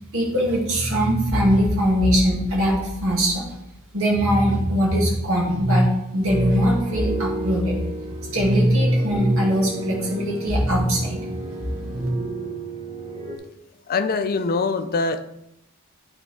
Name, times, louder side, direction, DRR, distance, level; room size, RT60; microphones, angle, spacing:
voice 1, 0.1-3.5 3.9-7.8 8.3-11.2 11.9-12.1, equal, 65° right, -3 dB, 2.4 m, -20 dB
sound 1, 6.3-13.4, right 2 dB, 25° right, 0.8 m, -33 dB
voice 2, 13.9-15.2, left 4 dB, 45° left, 9 dB, 0.5 m, -23 dB
9.5 x 4.4 x 3.6 m, 0.84 s
head